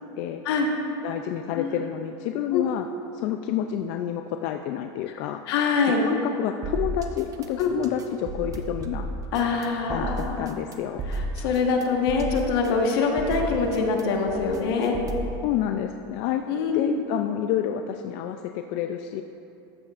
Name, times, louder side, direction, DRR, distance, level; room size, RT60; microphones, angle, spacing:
voice 1, 1.0-2.9 3.1-5.4 6.0-9.1 9.9-11.0 15.4-16.4 16.7-19.2, left 11 dB, 50° left, 6 dB, 0.3 m, -29 dB
voice 2, 5.5-6.0 7.6-7.7 9.3-10.4 11.1-15.0 16.5-17.0, left 5 dB, 75° left, 2 dB, 1.3 m, -24 dB
sound 1, 6.6-15.4, right 2 dB, 25° right, 0.6 m, -34 dB
13.0 x 8.4 x 2.5 m, 2.8 s
supercardioid pair, 145°, 13 cm